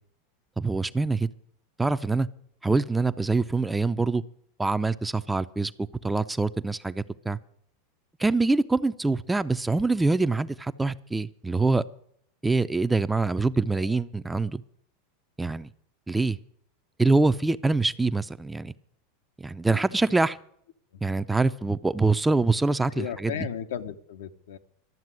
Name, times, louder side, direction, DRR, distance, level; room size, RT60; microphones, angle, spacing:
voice 1, 0.6-1.3 1.8-2.3 2.6-4.2 4.6-5.7 6.0-7.4 8.2-11.8 12.4-14.6 15.4-15.7 16.1-16.4 17.0-18.7 19.4-20.4 21.0-23.5, right 3 dB, 10° right, 13 dB, 0.6 m, -24 dB
voice 2, 23.0-24.6, left 9 dB, 75° left, 9 dB, 1.0 m, -35 dB
12.5 x 7.4 x 9.7 m, 0.66 s
hypercardioid pair, 95°, 0 cm